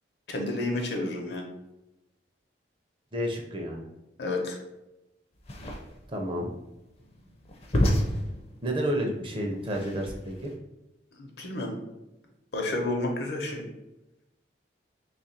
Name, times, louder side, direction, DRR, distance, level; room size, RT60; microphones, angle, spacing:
voice 1, 0.3-1.5 4.2-4.6 11.2-11.8 12.5-13.6, left 2 dB, 70° left, 2 dB, 0.7 m, -30 dB
voice 2, 3.1-3.9 6.1-6.5 8.6-10.1 10.4-10.5, equal, 30° right, 1 dB, 0.5 m, -30 dB
sound 1, 5.4-10.5, equal, 35° left, 0.5 m, -30 dB
3.1 x 2.4 x 4.2 m, 0.95 s
head